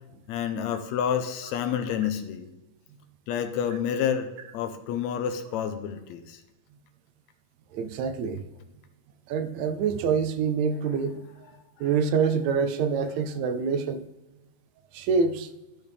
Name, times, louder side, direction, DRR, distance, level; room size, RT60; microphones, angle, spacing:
voice 1, 0.3-2.5 3.3-4.3 4.5-6.4 11.8-11.9, left 8 dB, 80° left, 8 dB, 1.8 m, -29 dB
voice 2, 7.7-8.4 9.3-11.2 11.8-14.1 14.9-15.5, right 5 dB, 80° right, 9 dB, 1.8 m, -26 dB
13.5 x 4.5 x 3.3 m, 1.0 s
omnidirectional pair, 3.3 m